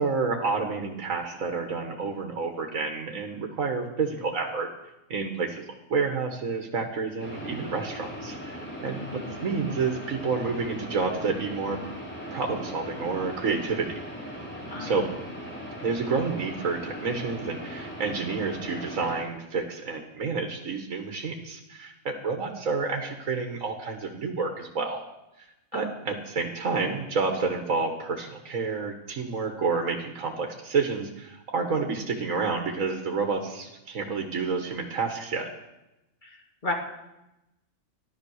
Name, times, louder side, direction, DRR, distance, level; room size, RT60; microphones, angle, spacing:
voice 1, 0.0-4.7 5.1-5.6 5.9-11.8 12.3-14.1 14.8-15.1 15.8-25.0 25.4-25.5 25.7-35.5, right 4 dB, 80° right, 4 dB, 1.8 m, -29 dB
sound 1, 7.2-19.2, equal, 10° left, 3.9 m, -39 dB
voice 2, 9.0-9.4 14.7-14.9 25.7-25.9 36.2-36.4 36.6-36.7, left 2 dB, 35° left, 2 dB, 2.3 m, -33 dB
13.5 x 12.0 x 6.5 m, 0.92 s
omnidirectional pair, 1.4 m